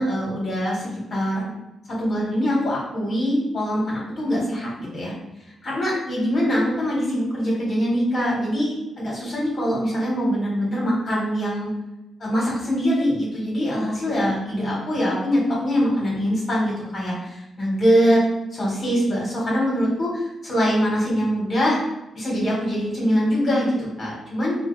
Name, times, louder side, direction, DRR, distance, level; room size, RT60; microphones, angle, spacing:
voice 1, 0.0-1.5 2.0-5.1 5.6-11.7 12.2-18.2 18.5-21.8 22.1-24.6, equal, 50° left, -4 dB, 1.4 m, -23 dB
3.1 x 2.3 x 3.2 m, 0.98 s
cardioid pair, 85°, 0 cm